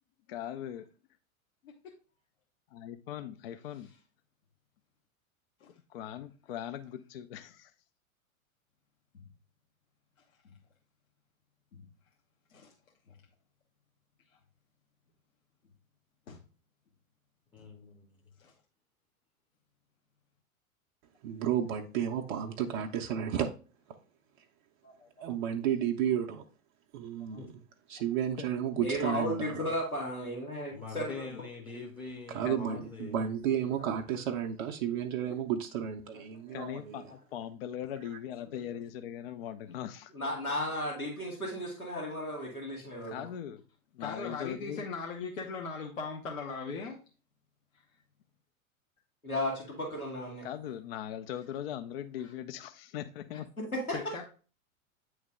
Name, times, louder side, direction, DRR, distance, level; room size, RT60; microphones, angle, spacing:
voice 1, 0.3-0.9 2.7-3.9 5.9-7.7 28.3-28.8 31.2-31.4 32.4-32.8 36.5-40.1 43.1-43.6 43.9-44.9 50.4-53.5, left 10 dB, 45° left, 0.5 m, -40 dB
voice 2, 17.5-18.1 27.4-27.5 30.7-33.2, left 4 dB, 10° left, 0.7 m, -43 dB
voice 3, 21.2-23.5 25.2-26.4 26.9-27.6 27.9-29.7 32.3-37.0, right 9 dB, 35° right, 0.5 m, -32 dB
voice 4, 24.8-25.5 27.2-27.4 44.0-47.0 47.7-47.8 52.2-52.3 53.3-53.4 53.9-54.2, left 4 dB, 65° left, 1.1 m, -40 dB
voice 5, 28.8-31.1 36.1-36.5 40.1-43.2 49.2-50.5 53.6-54.0, left 1 dB, 90° left, 1.8 m, -34 dB
8.7 x 3.1 x 3.6 m
figure-of-eight pair, 95°, 42 cm